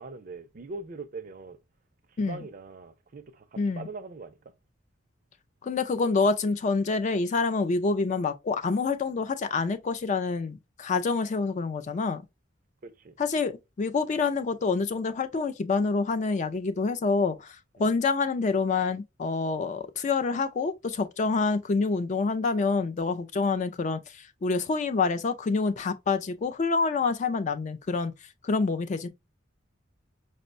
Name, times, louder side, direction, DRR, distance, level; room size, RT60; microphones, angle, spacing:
voice 1, 0.0-1.6 2.1-4.4 12.8-13.1 17.8-17.9, right 3 dB, 45° right, 0.4 m, -42 dB
voice 2, 3.6-3.9 5.6-12.2 13.2-28.1 28.4-29.1, left 4 dB, 40° left, 0.3 m, -27 dB
5.1 x 2.1 x 2.5 m
head